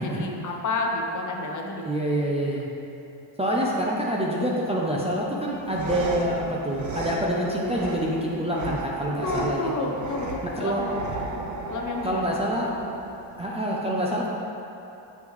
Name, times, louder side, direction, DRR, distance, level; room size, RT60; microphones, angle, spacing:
voice 1, 0.0-1.8 9.2-10.9 11.7-12.8, left 2 dB, 40° left, 1 dB, 0.6 m, -30 dB
voice 2, 1.8-2.7 3.4-9.9 10.4-10.8 12.0-12.7 13.4-14.3, right 1 dB, 15° right, -5 dB, 0.4 m, -26 dB
sound 1, 5.5-13.5, right 2 dB, 35° right, 0.8 m, -35 dB
8.0 x 5.4 x 3.0 m, 2.9 s
cardioid pair, 135°, 50 cm